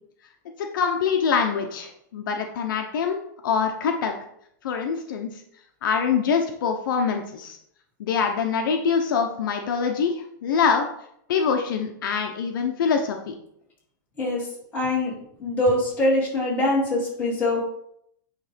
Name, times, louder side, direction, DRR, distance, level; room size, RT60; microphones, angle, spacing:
voice 1, 0.6-3.2 3.4-4.1 4.6-5.4 5.8-7.6 8.0-10.9 11.3-13.3, left 6 dB, 75° left, 4 dB, 1.0 m, -24 dB
voice 2, 14.2-15.1 15.4-17.6, left 1 dB, 15° left, -6 dB, 3.3 m, -23 dB
9.3 x 3.3 x 5.2 m, 0.72 s
supercardioid pair, 160°, 11 cm